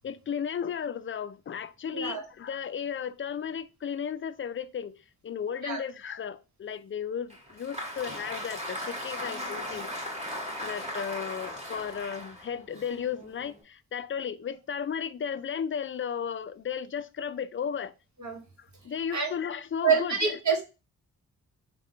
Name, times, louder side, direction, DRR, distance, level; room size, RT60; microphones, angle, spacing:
voice 1, 0.0-5.0 5.2-9.9 10.6-17.9 18.8-20.4, left 7 dB, 35° left, 0.4 m, -34 dB
voice 2, 1.9-2.2 5.6-5.8 18.2-18.4 19.1-19.3 19.8-20.6, right 6 dB, 50° right, 1.6 m, -26 dB
Applause, 7.3-13.6, equal, 20° right, 2.2 m, -38 dB
3.7 x 2.3 x 4.3 m
supercardioid pair, 40°, 36 cm